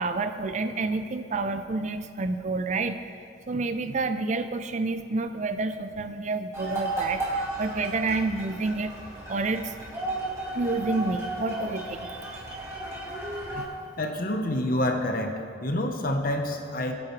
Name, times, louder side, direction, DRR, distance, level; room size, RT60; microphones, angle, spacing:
voice 1, 0.0-3.2 3.5-8.9 9.3-9.7 10.5-12.4 13.5-13.7, right 3 dB, 40° right, 9 dB, 0.5 m, -29 dB
sound 1, 6.5-13.6, right 2 dB, 15° right, 1.9 m, -34 dB
voice 2, 14.0-15.3 15.6-16.9, left 1 dB, 50° left, 4 dB, 1.0 m, -27 dB
19.5 x 8.5 x 3.3 m, 2.3 s
head